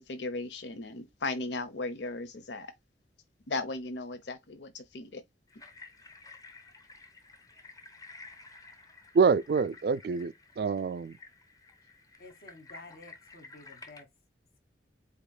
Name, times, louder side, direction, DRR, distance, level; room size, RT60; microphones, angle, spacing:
voice 1, 0.0-2.7 3.5-5.2, left 3 dB, 90° left, 0.9 m, -36 dB
sound 1, 5.5-14.0, left 3 dB, 20° left, 0.9 m, -52 dB
voice 2, 9.1-11.2, right 5 dB, 60° right, 0.3 m, -26 dB
voice 3, 12.2-14.1, left 2 dB, 60° left, 1.5 m, -51 dB
8.1 x 2.9 x 2.2 m
head